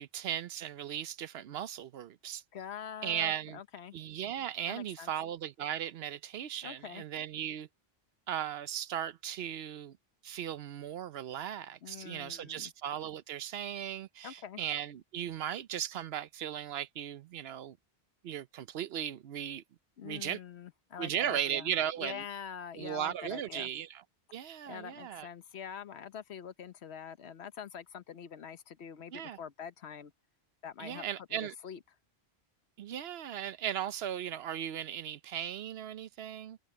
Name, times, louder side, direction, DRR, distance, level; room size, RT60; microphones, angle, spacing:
voice 1, 0.0-2.4 3.0-3.6 3.9-7.7 8.3-10.0 10.2-17.8 18.2-19.6 20.0-20.4 21.0-22.2 22.8-24.0 24.3-25.3 29.1-29.4 30.8-31.5 32.8-36.6, right 10 dB, 75° right, 0.9 m, -37 dB
voice 2, 2.5-4.0 4.7-5.1 6.6-7.0 11.8-12.7 14.2-14.6 20.0-21.7 22.0-23.7 24.4-30.1 30.6-31.8, left 8 dB, 80° left, 1.2 m, -45 dB
omnidirectional pair, 1.1 m